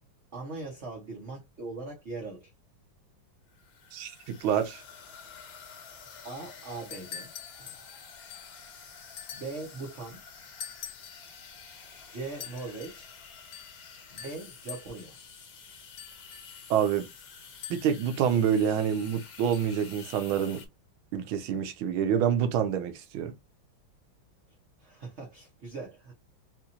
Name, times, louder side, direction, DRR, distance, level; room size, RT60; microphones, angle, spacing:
voice 1, 0.3-2.5 6.2-7.3 7.6-7.8 9.3-10.2 12.1-13.1 14.1-15.2 24.8-26.1, right 3 dB, 45° right, 1.1 m, -40 dB
sound 1, 3.5-20.7, left 6 dB, 60° left, 1.4 m, -49 dB
voice 2, 3.9-4.8 16.7-17.1 17.7-20.6 21.1-23.3, right 8 dB, 80° right, 1.5 m, -27 dB
sound 2, 6.7-8.6 9.2-9.7 10.6-11.4 12.4-13.0 13.5-13.8 14.2-15.2 16.0-16.7 17.6-18.1 19.5-19.6, left 8 dB, 75° left, 1.6 m, -45 dB
4.2 x 2.5 x 2.7 m
omnidirectional pair, 2.2 m